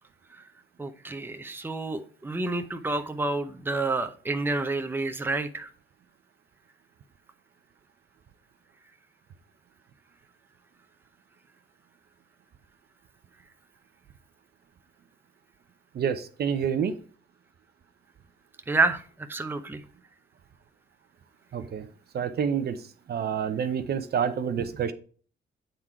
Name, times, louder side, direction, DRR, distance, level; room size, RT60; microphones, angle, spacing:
voice 1, 0.8-5.7 18.7-19.8, right 3 dB, 10° right, 7 dB, 0.7 m, -29 dB
voice 2, 16.0-16.9 21.5-21.8 22.1-22.8 23.1-24.9, right 7 dB, 55° right, 10 dB, 0.7 m, -28 dB
8.1 x 3.8 x 4.4 m, 0.42 s
cardioid pair, 90°, 20 cm